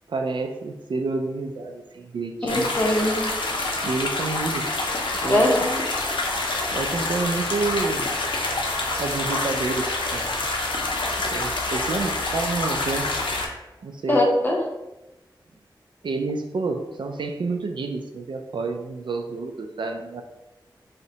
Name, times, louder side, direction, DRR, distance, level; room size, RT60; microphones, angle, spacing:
voice 1, 0.1-2.7 3.8-4.8 5.2-5.5 6.7-8.1 9.0-10.4 11.3-13.1 13.8-14.3 16.0-20.2, right 3 dB, 70° right, 4 dB, 0.3 m, -29 dB
voice 2, 2.4-3.3 5.3-5.8 14.1-14.6, left 1 dB, 20° left, -2 dB, 0.7 m, -21 dB
sound 1, 2.5-13.5, left 2 dB, 75° left, 0.5 m, -27 dB
2.7 x 2.1 x 3.8 m, 0.97 s
wide cardioid pair, 70°, 8 cm